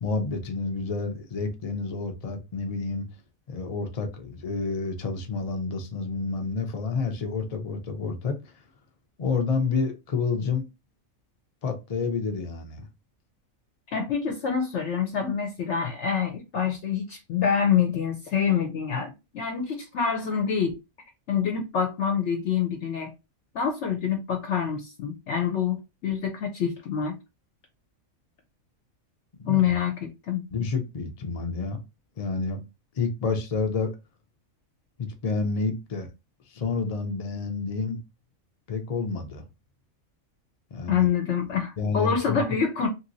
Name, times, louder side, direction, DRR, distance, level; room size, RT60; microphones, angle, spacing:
voice 1, 0.0-3.1 3.5-8.4 9.2-10.7 11.6-12.9 29.4-29.8 30.5-31.8 32.2-32.6 33.0-33.9 35.0-36.1 36.5-38.0 38.7-39.4 40.7-41.1 41.8-42.4, left 4 dB, 40° left, 0.5 m, -29 dB
voice 2, 13.9-20.8 21.3-23.1 23.5-27.1 29.4-30.4 40.9-42.9, left 7 dB, 65° left, 0.9 m, -26 dB
2.9 x 2.9 x 2.6 m
omnidirectional pair, 1.4 m